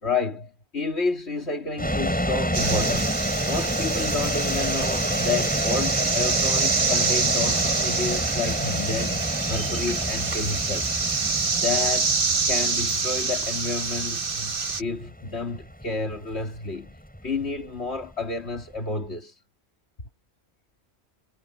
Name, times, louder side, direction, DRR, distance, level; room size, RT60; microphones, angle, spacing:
voice 1, 0.0-3.2 3.5-9.2 9.5-10.9 11.5-12.2 12.4-14.5 14.8-19.4, left 3 dB, 90° left, 3.2 m, -30 dB
sound 1, 1.8-18.8, equal, 10° left, 7.9 m, -29 dB
sound 2, 2.5-14.8, right 4 dB, 55° right, 1.6 m, -26 dB
omnidirectional pair, 1.1 m